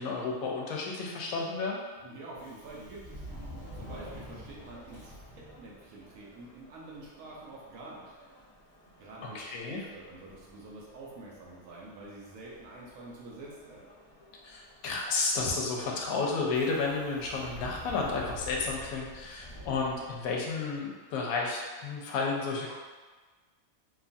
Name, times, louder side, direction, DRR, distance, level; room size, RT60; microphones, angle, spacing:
voice 1, 0.0-1.8 9.2-9.8 14.4-22.7, left 4 dB, 75° left, -1 dB, 1.0 m, -32 dB
voice 2, 2.0-3.3 3.7-8.1 9.0-13.9, right 2 dB, 75° right, -4 dB, 1.0 m, -47 dB
Subway metro underground, 2.3-20.6, equal, 40° left, 0.5 m, -50 dB
2.9 x 2.3 x 2.5 m, 1.4 s
omnidirectional pair, 1.5 m